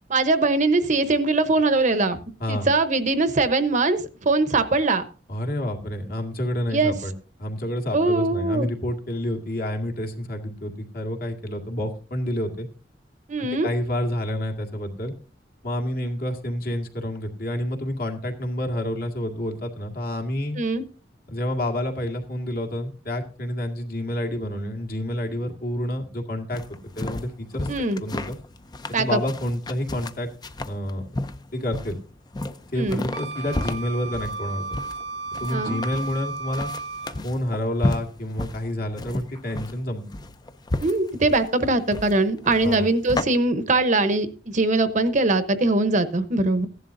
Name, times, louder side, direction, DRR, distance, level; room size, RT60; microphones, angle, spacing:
voice 1, 0.1-2.2 2.5-5.0 6.7-6.9 7.9-8.7 13.3-13.7 20.6-20.8 27.7-28.0 28.9-29.2 32.7-33.0 35.5-35.8 40.8-46.7, right 2 dB, 45° right, 10 dB, 0.9 m, -22 dB
voice 2, 5.3-7.1 7.4-12.7 13.4-15.1 15.6-20.6 21.3-26.6 27.0-27.7 28.0-28.4 28.9-30.3 30.7-31.3 31.5-32.0 32.7-34.6 35.4-36.7 37.2-40.0 42.6-42.9, left 1 dB, 55° left, 3 dB, 2.0 m, -29 dB
sound 1, 26.5-43.2, left 2 dB, 25° left, 0.6 m, -33 dB
Wind instrument woodwind instrument, 33.1-37.2, right 3 dB, 85° right, 1.0 m, -34 dB
15.5 x 11.0 x 2.6 m, 0.36 s
head